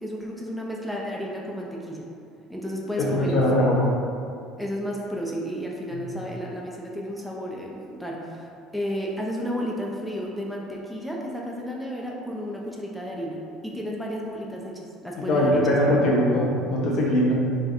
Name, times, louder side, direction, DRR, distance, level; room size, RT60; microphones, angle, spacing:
voice 1, 0.0-2.1 2.5-3.6 4.6-15.7, equal, ahead, -3 dB, 0.4 m, -32 dB
voice 2, 3.0-3.8 5.9-6.0 15.3-17.3, left 1 dB, 55° left, -4 dB, 0.6 m, -21 dB
2.6 x 2.2 x 2.5 m, 2.4 s
hypercardioid pair, 65°, 0 cm